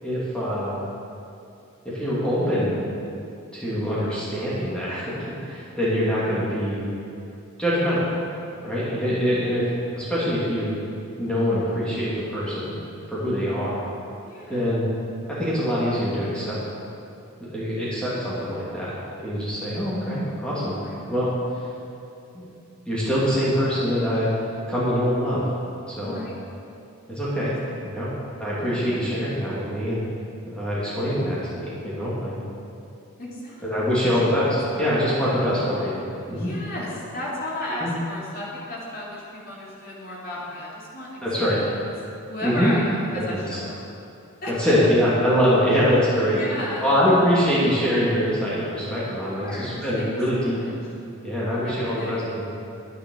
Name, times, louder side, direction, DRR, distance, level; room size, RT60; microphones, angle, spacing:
voice 1, 0.0-0.7 1.8-2.8 3.5-6.9 7.6-8.0 8.6-9.6 9.9-10.7 11.2-12.8 13.1-13.8 14.5-14.9 15.3-16.5 17.4-20.8 21.1-21.3 22.3-22.5 22.9-24.3 24.7-25.4 25.9-26.2 27.1-27.5 27.8-28.1 28.4-30.0 30.5-32.3 33.6-36.0 36.3-36.5 37.8-37.9 41.2-41.6 42.4-42.7 43.3-43.6 44.5-46.4 46.8-50.6 51.2-52.5, equal, 5° left, -9 dB, 2.8 m, -24 dB
voice 2, 14.2-14.8 17.7-17.8 20.8-21.0 26.0-26.3 27.4-27.8 28.8-29.0 33.2-34.2 34.7-35.1 36.3-41.8 42.3-43.8 44.4-44.9 46.3-46.9 48.9-50.7 51.6-52.3, left 1 dB, 40° left, -6 dB, 3.2 m, -35 dB
11.0 x 10.0 x 6.5 m, 2.7 s
head